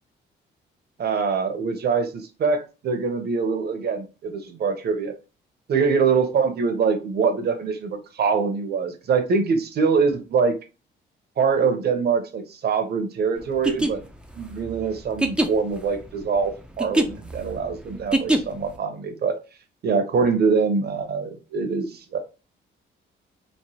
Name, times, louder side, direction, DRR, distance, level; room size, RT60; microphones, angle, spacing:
voice 1, 1.0-5.1 5.7-10.5 11.4-14.0 14.4-19.3 19.8-22.2, right 5 dB, 55° right, 0.7 m, -24 dB
sound 1, 13.5-18.8, right 1 dB, 5° right, 0.4 m, -25 dB
3.1 x 2.0 x 2.7 m
cardioid pair, 90°, 20 cm